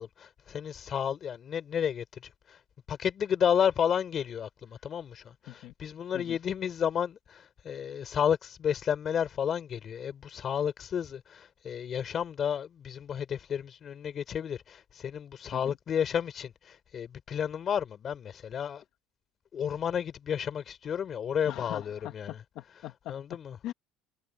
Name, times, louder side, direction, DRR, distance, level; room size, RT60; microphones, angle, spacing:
voice 1, 0.0-2.6 2.9-18.8 19.5-22.4 23.1-23.6, left 8 dB, 30° left, 4.2 m, -32 dB
voice 2, 21.5-23.1 23.6-23.7, left 14 dB, 50° left, 1.4 m, -41 dB
cardioid pair, 165°, 0 cm